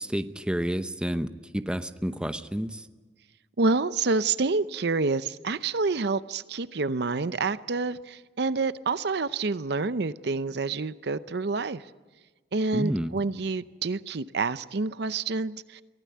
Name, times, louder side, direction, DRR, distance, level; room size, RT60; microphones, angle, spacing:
voice 1, 0.0-2.8 12.7-13.2, equal, 5° right, 9 dB, 0.8 m, -30 dB
voice 2, 3.6-11.8 12.5-15.8, right 3 dB, 65° right, 14 dB, 0.7 m, -28 dB
23.5 x 16.0 x 9.5 m, 1.3 s
head